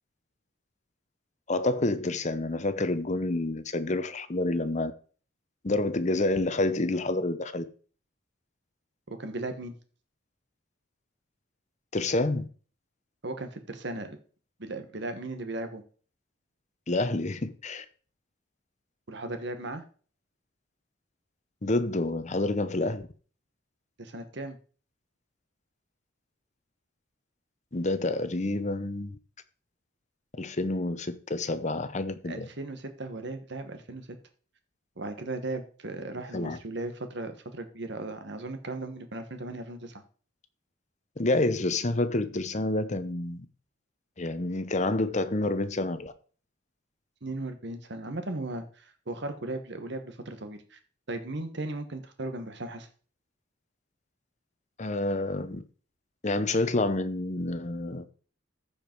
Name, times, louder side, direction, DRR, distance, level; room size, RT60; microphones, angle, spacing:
voice 1, 1.5-4.9 5.6-7.6 11.9-12.5 16.9-17.8 21.6-23.1 27.7-29.2 30.4-32.5 36.3-36.6 41.2-43.5 44.2-46.1 54.8-55.6 56.2-58.0, left 2 dB, 35° left, 0.8 m, -28 dB
voice 2, 9.1-9.7 13.2-14.2 14.6-15.8 19.1-19.8 24.0-24.6 32.2-34.2 35.0-40.0 47.2-50.8 51.1-52.9, right 2 dB, 60° right, 1.4 m, -37 dB
14.5 x 5.1 x 4.6 m
head